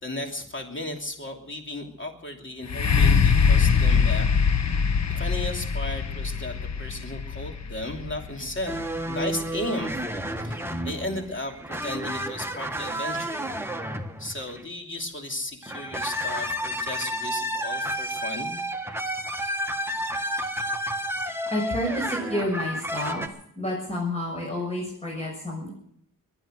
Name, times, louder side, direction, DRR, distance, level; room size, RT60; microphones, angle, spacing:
voice 1, 0.0-4.3 5.1-10.0 10.4-13.5 14.2-18.6, left 1 dB, 35° left, 3 dB, 2.9 m, -35 dB
sound 1, 2.6-10.4 11.0-11.1, left 6 dB, 55° left, 1.2 m, -23 dB
sound 2, 8.7-14.7 15.6-23.3, equal, 5° right, 1.5 m, -31 dB
voice 2, 21.5-23.2 23.6-25.7, left 1 dB, 20° left, -2 dB, 6.4 m, -29 dB
22.5 x 9.1 x 6.3 m, 0.68 s
wide cardioid pair, 75°, 33 cm